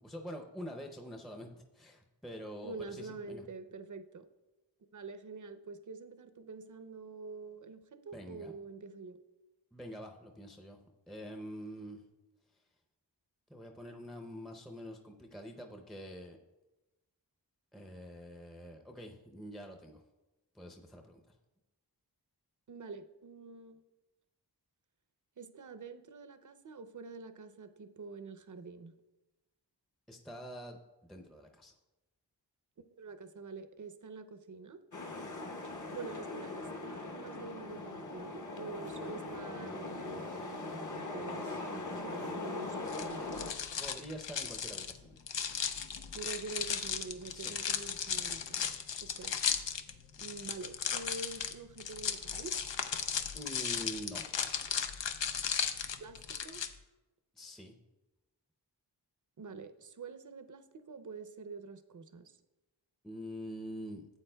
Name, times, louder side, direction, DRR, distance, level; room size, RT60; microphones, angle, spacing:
voice 1, 0.0-1.5 1.7-3.4 8.1-8.5 9.7-10.8 11.1-12.0 13.5-16.4 17.7-20.0 20.5-21.4 30.1-31.7 43.8-45.2 47.3-47.6 53.3-54.3 57.4-57.7 63.0-64.1, equal, ahead, 3 dB, 0.6 m, -46 dB
voice 2, 2.6-4.3 4.9-9.2 22.7-23.8 25.4-28.9 33.0-34.8 35.9-43.5 46.1-48.7 49.0-49.4 50.2-52.6 56.0-56.6 59.4-62.4, right 4 dB, 45° right, 11 dB, 0.6 m, -46 dB
sound 1, 34.9-43.5, left 2 dB, 45° left, 0.9 m, -41 dB
sound 2, 42.9-56.7, left 7 dB, 85° left, 0.6 m, -36 dB
12.0 x 8.2 x 2.2 m, 1.1 s
wide cardioid pair, 50°, 43 cm